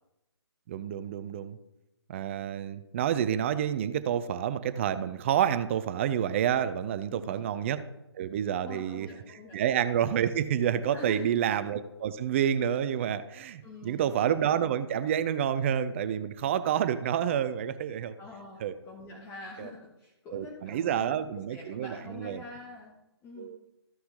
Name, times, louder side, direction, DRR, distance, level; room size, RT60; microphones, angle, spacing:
voice 1, 0.7-1.6 2.1-7.8 8.1-9.1 9.5-18.2 18.6-18.7 19.6-19.7 20.3-22.4 23.4-23.7, right 9 dB, 30° right, 13 dB, 0.6 m, -29 dB
voice 2, 7.1-7.4 8.6-9.6 10.9-11.3 13.6-14.1 18.2-22.9 23.2-23.5, left 2 dB, 15° left, -1 dB, 1.2 m, -45 dB
13.5 x 5.7 x 3.8 m, 0.93 s
figure-of-eight pair, 145°, 14 cm